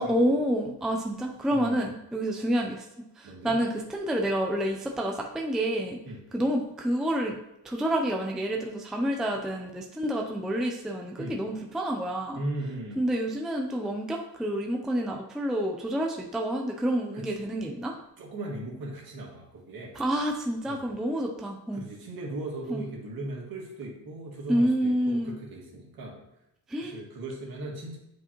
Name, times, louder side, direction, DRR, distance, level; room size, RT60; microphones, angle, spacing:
voice 1, 0.0-2.9 3.2-6.0 6.3-7.4 7.6-12.4 13.0-18.0 19.9-21.8 22.7-22.8 24.5-25.3 26.7-27.0, right 1 dB, ahead, 1 dB, 0.4 m, -28 dB
voice 2, 1.5-1.9 3.2-3.6 6.0-6.2 11.2-11.4 12.3-13.0 17.1-17.3 18.2-19.9 20.6-20.9 21.7-26.2 26.8-28.0, right 2 dB, 60° right, -2 dB, 2.1 m, -38 dB
8.8 x 5.0 x 3.0 m, 0.86 s
cardioid pair, 165°, 41 cm